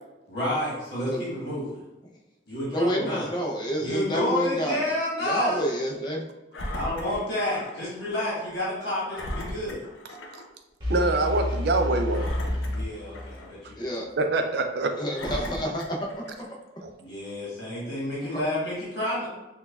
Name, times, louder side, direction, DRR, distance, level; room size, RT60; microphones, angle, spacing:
voice 1, 0.3-1.7 2.5-3.3 3.8-5.6 6.7-9.8 12.7-14.0 17.0-19.3, left 1 dB, 55° left, -7 dB, 1.3 m, -30 dB
voice 2, 2.7-4.9 5.2-6.3 13.7-14.1 15.0-16.5 18.2-18.4, equal, 20° left, -1 dB, 0.5 m, -28 dB
Engine, 6.5-7.8 8.2-8.3 9.1-10.5 10.9-11.0 12.1-13.6 14.2-14.3 15.1-16.5 17.2-17.3, left 1 dB, 80° left, 0.6 m, -37 dB
sound 1, 10.8-13.7, left 1 dB, 25° right, 1.0 m, -30 dB
voice 3, 10.9-12.3 14.2-15.0 16.8-16.9, right 2 dB, 55° right, 5 dB, 0.4 m, -24 dB
5.9 x 2.2 x 2.2 m, 1.0 s
head